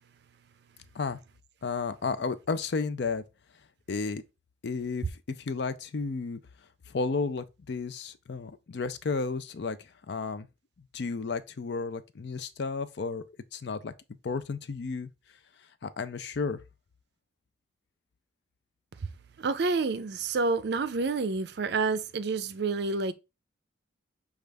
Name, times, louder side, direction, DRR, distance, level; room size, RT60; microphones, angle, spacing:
voice 1, 1.6-3.2 3.9-4.2 4.6-6.4 6.9-10.5 10.9-13.2 13.5-13.9 14.2-15.1 15.8-16.6, left 4 dB, 55° left, 0.4 m, -32 dB
voice 2, 19.4-23.1, right 4 dB, 55° right, 0.4 m, -28 dB
6.3 x 2.4 x 3.4 m
head